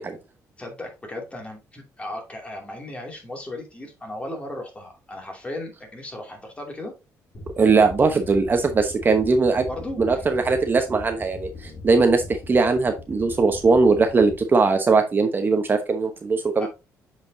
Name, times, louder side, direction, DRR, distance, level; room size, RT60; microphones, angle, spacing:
voice 1, 0.6-6.9 9.7-10.3 16.6-16.7, left 1 dB, 20° left, 2 dB, 2.6 m, -36 dB
sound 1, 7.3-14.4, left 3 dB, 40° left, 3.0 m, -40 dB
voice 2, 7.6-9.7 10.0-16.7, right 4 dB, 35° right, 6 dB, 1.0 m, -20 dB
7.9 x 5.2 x 2.7 m, 0.26 s
cardioid pair, 95°, 6 cm